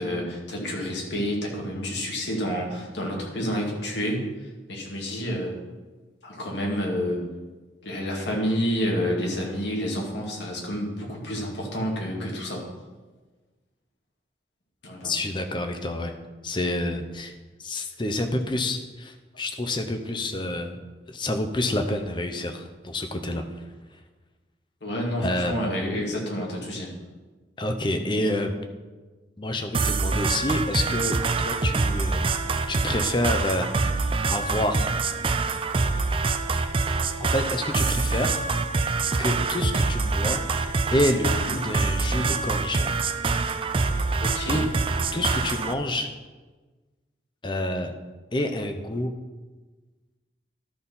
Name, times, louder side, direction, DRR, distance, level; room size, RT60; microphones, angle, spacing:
voice 1, 0.0-5.6 6.2-7.2 7.8-12.6 14.8-15.1 24.8-26.9 41.4-41.5 44.2-44.7 45.1-45.2, equal, 75° left, -1 dB, 2.1 m, -29 dB
voice 2, 15.0-16.1 16.4-17.3 17.6-20.8 21.1-23.4 25.2-25.6 27.6-28.5 29.4-32.2 32.7-33.7 34.3-34.9 37.2-38.4 38.7-38.9 39.2-40.4 40.9-42.9 44.5-44.6 45.1-46.1 47.4-47.9 48.3-49.1, left 1 dB, 25° left, 6 dB, 0.7 m, -28 dB
sound 1, 29.7-45.7, right 3 dB, 30° right, 0.4 m, -25 dB
12.5 x 4.2 x 5.5 m, 1.3 s
head